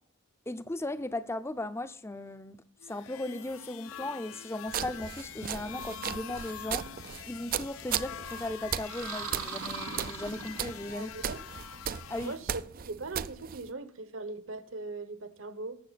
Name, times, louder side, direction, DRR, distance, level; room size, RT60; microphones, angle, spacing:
voice 1, 0.5-2.6 2.9-6.8 7.2-11.3 12.1-12.3, left 1 dB, 10° left, 0.6 m, -37 dB
sound 1, 2.8-12.4, left 9 dB, 65° left, 0.5 m, -45 dB
sound 2, 4.7-13.7, right 9 dB, 40° right, 0.4 m, -37 dB
sound 3, 8.8-11.1, right 6 dB, 85° right, 1.3 m, -40 dB
voice 2, 10.9-11.4 12.2-15.8, right 3 dB, 60° right, 1.1 m, -40 dB
18.5 x 7.8 x 4.1 m
head